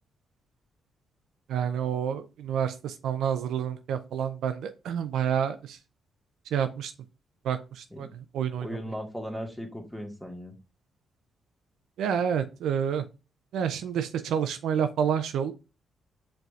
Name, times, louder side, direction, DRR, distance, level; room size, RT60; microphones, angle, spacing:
voice 1, 1.5-5.6 6.5-6.9 7.5-7.6 8.0-8.1 8.3-8.7 12.0-13.0 13.5-15.5, right 8 dB, 75° right, 9 dB, 0.3 m, -28 dB
voice 2, 8.6-10.5, equal, ahead, 2 dB, 1.5 m, -37 dB
4.7 x 3.2 x 2.4 m, 0.30 s
hypercardioid pair, 45°, 0 cm